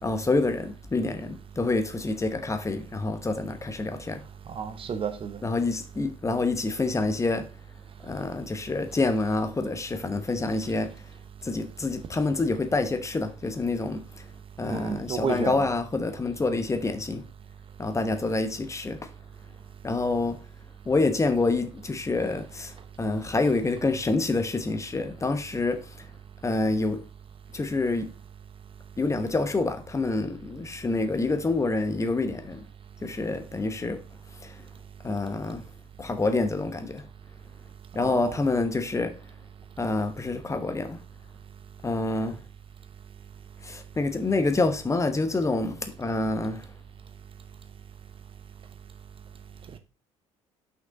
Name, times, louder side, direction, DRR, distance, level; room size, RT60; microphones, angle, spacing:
voice 1, 0.0-4.2 5.4-7.5 8.0-10.9 11.4-14.2 14.6-17.2 17.8-19.1 19.8-20.4 20.8-26.1 26.4-27.0 27.5-28.1 29.0-32.6 33.0-34.0 34.4-34.6 35.0-35.6 36.0-37.1 37.9-39.1 39.8-41.0 41.8-42.4 43.6-46.7, left 3 dB, 15° left, 1.0 m, -27 dB
voice 2, 4.5-5.4 14.7-15.7 38.0-38.4, right 6 dB, 30° right, 1.0 m, -31 dB
5.8 x 5.7 x 3.9 m
figure-of-eight pair, 55°, 17 cm